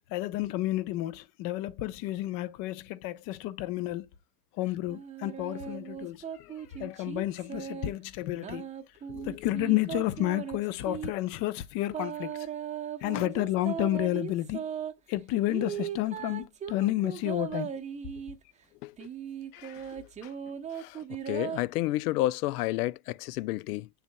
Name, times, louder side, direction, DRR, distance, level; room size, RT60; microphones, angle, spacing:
voice 1, 0.1-4.1 4.6-6.2 6.8-8.7 9.2-12.5 13.0-14.6 15.1-17.7, left 15 dB, 45° left, 0.8 m, -31 dB
sound 1, 4.9-7.9 8.3-11.1 11.9-14.9 15.5-18.4 19.0-21.6, right 8 dB, 15° right, 0.7 m, -38 dB
voice 2, 9.1-9.5 13.1-13.3 18.8-18.9 19.5-20.3 20.7-23.9, left 17 dB, 80° left, 0.5 m, -32 dB
8.7 x 6.9 x 2.2 m
supercardioid pair, 135°, 46 cm